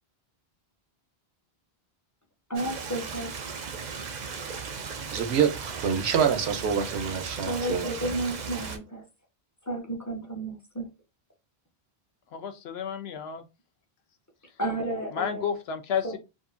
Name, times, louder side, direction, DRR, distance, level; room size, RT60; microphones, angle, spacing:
voice 1, 2.5-3.3 7.4-9.0 9.7-10.9 14.6-15.5 16.0-16.2, right 1 dB, 20° left, 0.5 m, -32 dB
Stream, 2.5-8.8, right 5 dB, 55° right, 0.6 m, -37 dB
voice 2, 5.1-8.2, right 7 dB, 90° right, 0.9 m, -26 dB
voice 3, 12.3-13.4 15.1-16.2, left 7 dB, 75° left, 0.8 m, -31 dB
2.8 x 2.5 x 2.4 m
omnidirectional pair, 1.1 m